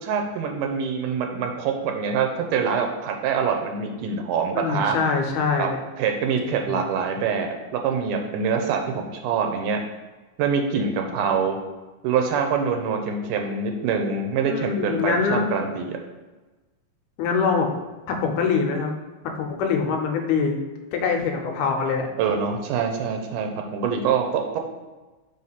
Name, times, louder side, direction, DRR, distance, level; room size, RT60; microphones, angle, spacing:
voice 1, 0.0-5.0 5.6-5.7 6.0-9.8 10.4-11.6 12.0-16.0 22.2-24.6, right 6 dB, 80° right, 4 dB, 2.1 m, -25 dB
voice 2, 4.5-5.8 6.4-6.8 14.4-15.5 17.2-17.7 18.1-18.9 19.2-20.6 20.9-22.1, left 5 dB, 85° left, 3 dB, 2.2 m, -24 dB
5.7 x 3.0 x 5.5 m, 1.2 s
omnidirectional pair, 3.7 m